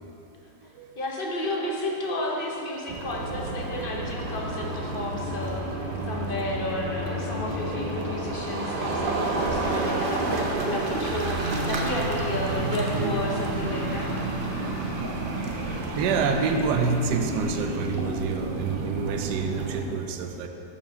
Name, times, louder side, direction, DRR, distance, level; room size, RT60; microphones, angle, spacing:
voice 1, 0.6-14.1, left 1 dB, 50° left, -2 dB, 0.6 m, -32 dB
sound 1, 2.9-19.8, right 2 dB, 50° right, 0.6 m, -30 dB
voice 2, 16.0-20.5, right 5 dB, 80° right, 5 dB, 1.1 m, -27 dB
6.8 x 4.8 x 6.1 m, 2.9 s
omnidirectional pair, 1.8 m